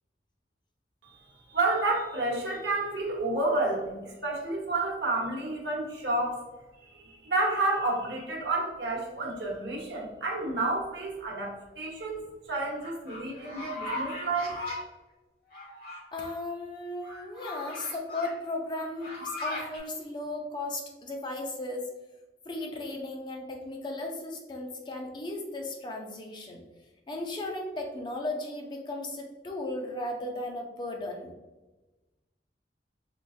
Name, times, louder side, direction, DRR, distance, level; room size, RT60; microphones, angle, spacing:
voice 1, 1.5-6.4 6.8-14.6, right 2 dB, 70° right, -1 dB, 0.9 m, -30 dB
sound 1, 12.8-14.8 15.5-16.4 17.0-18.3 18.7-19.8, left 2 dB, 55° left, 1.1 m, -38 dB
voice 2, 16.1-21.9 22.5-26.6 27.1-31.3, left 2 dB, 25° left, 2 dB, 0.4 m, -36 dB
3.8 x 2.4 x 2.4 m, 1.1 s
head